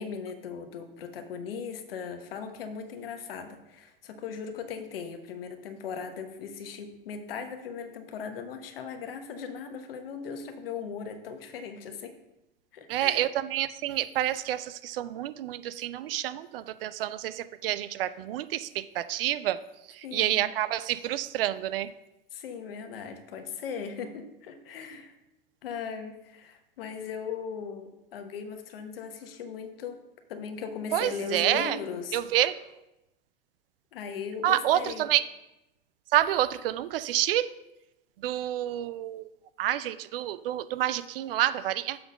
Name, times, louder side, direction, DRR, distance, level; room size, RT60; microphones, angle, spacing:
voice 1, 0.0-12.2 12.7-13.2 20.0-20.5 22.3-25.2 25.6-30.0 30.3-32.2 33.9-35.1, left 6 dB, 75° left, 7 dB, 1.0 m, -38 dB
voice 2, 12.9-19.6 19.9-21.9 30.9-31.8 32.1-32.6 34.4-35.2 36.1-37.5 38.2-39.3 39.6-42.0, right 13 dB, 70° right, 14 dB, 0.5 m, -28 dB
6.9 x 3.9 x 6.3 m, 0.94 s
hypercardioid pair, 85°, 29 cm